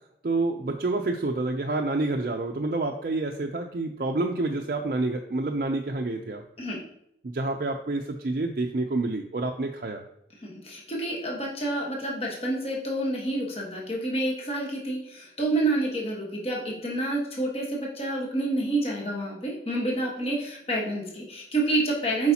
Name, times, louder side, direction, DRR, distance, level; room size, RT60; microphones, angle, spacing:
voice 1, 0.2-6.4 7.2-10.0, right 2 dB, 50° right, 2 dB, 0.5 m, -28 dB
voice 2, 10.4-22.3, right 2 dB, 35° left, -2 dB, 1.3 m, -28 dB
8.2 x 4.8 x 2.8 m, 0.75 s
head